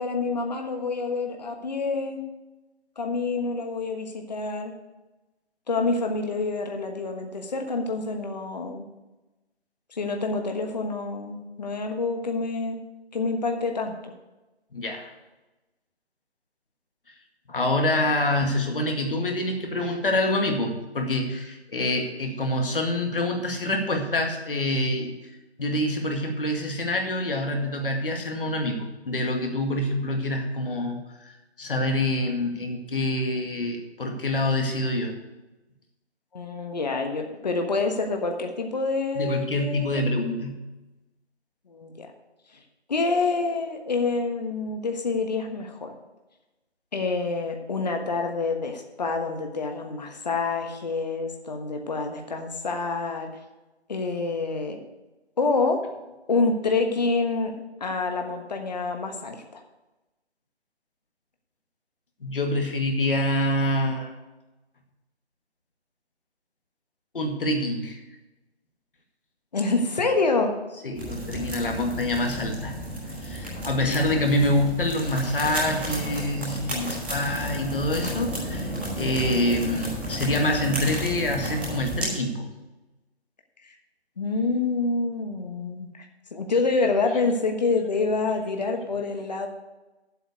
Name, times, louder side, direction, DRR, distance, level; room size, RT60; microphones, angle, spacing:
voice 1, 0.0-2.2 3.0-4.7 5.7-8.8 10.0-12.8 13.1-14.1 36.3-40.0 41.7-42.1 42.9-45.9 46.9-53.3 53.9-54.8 55.4-55.8 56.3-57.5 57.8-59.6 69.5-70.5 73.9-74.0 84.2-86.0 86.3-89.5, left 3 dB, 40° left, 4 dB, 1.3 m, -27 dB
voice 2, 14.7-15.1 17.5-25.1 25.6-31.3 31.6-35.1 39.2-40.6 62.2-64.1 67.1-68.0 70.8-72.7 73.2-82.5, left 1 dB, 55° left, 3 dB, 2.1 m, -26 dB
sound 1, 70.9-82.1, equal, 5° right, 1.9 m, -32 dB
8.0 x 7.4 x 8.4 m, 1.1 s
figure-of-eight pair, 165°, 33 cm